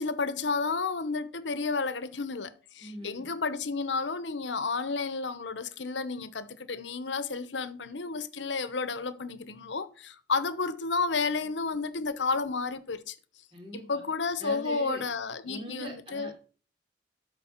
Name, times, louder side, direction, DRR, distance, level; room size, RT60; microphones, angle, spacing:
voice 1, 0.0-13.2 13.7-16.3, left 4 dB, 85° left, 0.9 m, -31 dB
voice 2, 2.8-3.3 13.5-14.0 14.4-15.0 15.5-16.5, right 2 dB, 30° right, 3.1 m, -41 dB
13.0 x 4.7 x 4.5 m
head